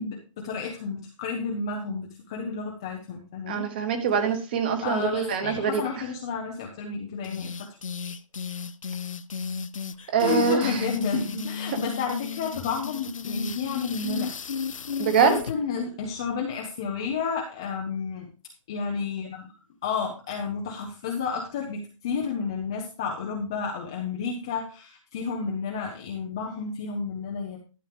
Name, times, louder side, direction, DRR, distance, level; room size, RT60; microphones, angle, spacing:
voice 1, 0.0-3.6 4.8-7.7 8.0-8.1 10.2-14.3 15.1-18.3 18.7-19.5 19.8-27.6, left 5 dB, 10° left, 0 dB, 0.5 m, -31 dB
voice 2, 3.5-5.8 10.1-10.9 11.7-11.8 15.0-15.4, right 6 dB, 20° right, 8 dB, 1.0 m, -24 dB
sound 1, 7.2-15.5, left 5 dB, 75° left, 0.8 m, -34 dB
12.5 x 7.0 x 3.4 m, 0.34 s
hypercardioid pair, 175°, 17 cm